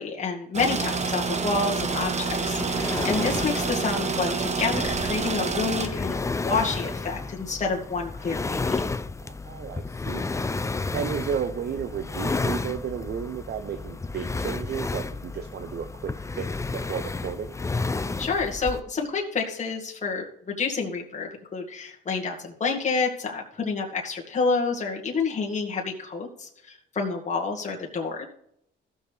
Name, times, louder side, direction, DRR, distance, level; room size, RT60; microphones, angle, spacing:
voice 1, 0.0-8.8 18.2-28.2, left 4 dB, 35° left, -1 dB, 1.9 m, -29 dB
sound 1, 0.5-5.9, right 4 dB, 35° right, 1.3 m, -28 dB
sound 2, 1.8-18.8, left 3 dB, 15° left, 0.5 m, -32 dB
voice 2, 9.2-10.4 10.7-17.6, right 7 dB, 55° right, 8 dB, 0.7 m, -33 dB
15.0 x 6.3 x 3.5 m, 0.72 s
cardioid pair, 90°, 20 cm